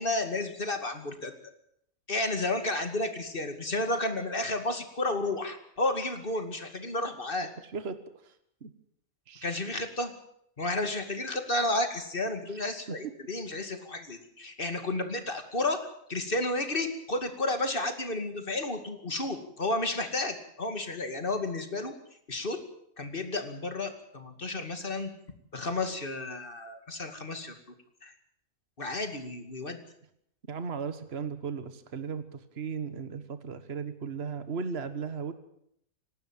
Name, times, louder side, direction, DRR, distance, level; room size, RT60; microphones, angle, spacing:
voice 1, 0.0-1.3 2.1-7.5 9.4-10.1 10.6-15.8 16.1-21.9 22.3-22.6 23.0-25.1 25.5-27.5 28.0-28.1 28.8-29.8, left 2 dB, 35° left, 7 dB, 2.6 m, -32 dB
voice 2, 9.3-9.6 12.9-13.0 30.5-35.3, right 5 dB, 45° right, 10 dB, 1.7 m, -36 dB
27.0 x 12.0 x 9.1 m, 0.72 s
omnidirectional pair, 1.6 m